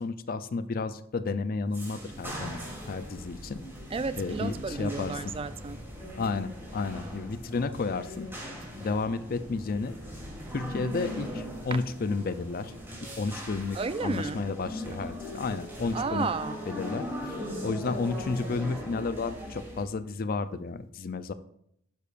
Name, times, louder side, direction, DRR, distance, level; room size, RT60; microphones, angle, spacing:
voice 1, 0.0-2.6 2.9-3.7 4.2-5.1 6.2-8.3 8.8-10.0 10.5-12.7 13.0-16.3 16.7-17.4 17.6-21.3, left 4 dB, 45° left, 0.5 m, -32 dB
sound 1, 1.7-19.8, equal, 10° right, 2.9 m, -40 dB
voice 2, 3.9-5.8 8.8-8.9 11.7-11.8 13.7-14.4 15.9-16.6, right 4 dB, 30° right, 0.4 m, -32 dB
11.0 x 10.0 x 2.5 m
head